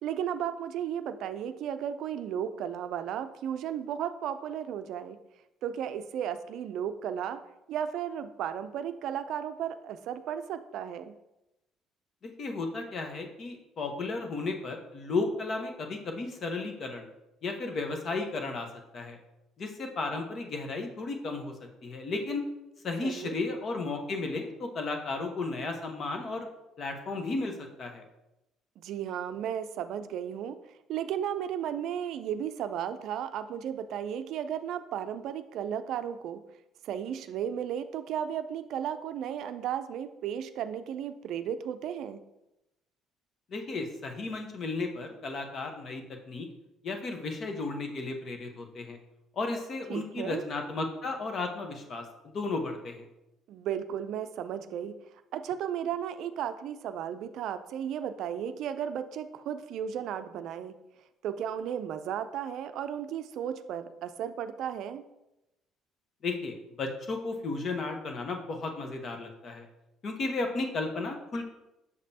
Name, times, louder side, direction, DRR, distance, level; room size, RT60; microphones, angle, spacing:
voice 1, 0.0-5.2 5.6-7.4 7.7-11.1 23.0-23.3 28.8-30.6 30.9-36.4 36.8-42.2 49.9-50.4 53.5-54.9 55.3-60.7 61.2-65.0, right 9 dB, 70° right, 10 dB, 0.4 m, -34 dB
voice 2, 12.2-17.1 17.4-18.7 18.9-19.2 19.6-21.5 21.8-22.4 22.8-26.5 26.8-28.0 43.5-46.5 46.8-49.0 49.4-53.0 66.2-69.7 70.0-71.4, left 3 dB, 50° left, 4 dB, 1.0 m, -34 dB
6.5 x 5.2 x 2.8 m, 0.92 s
supercardioid pair, 90°, 0 cm